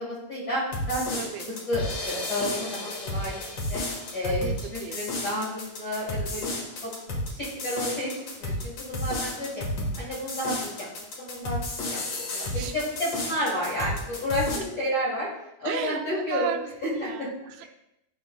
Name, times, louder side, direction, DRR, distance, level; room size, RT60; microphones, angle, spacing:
voice 1, 0.0-1.2 1.7-3.8 4.1-4.4 4.7-6.9 7.3-8.1 8.4-9.6 10.0-10.7 11.2-11.6 12.3-15.3 15.6-16.5 16.8-17.3 17.6-17.7, left 1 dB, 40° left, -8 dB, 1.6 m, -31 dB
sound 1, 0.7-14.6, left 1 dB, 55° left, 2.1 m, -32 dB
voice 2, 1.1-1.5 4.2-5.0 7.0-7.2 12.4-12.7 15.6-17.7, right 9 dB, 85° right, 6 dB, 2.4 m, -35 dB
11.5 x 4.4 x 2.3 m, 0.86 s
omnidirectional pair, 4.1 m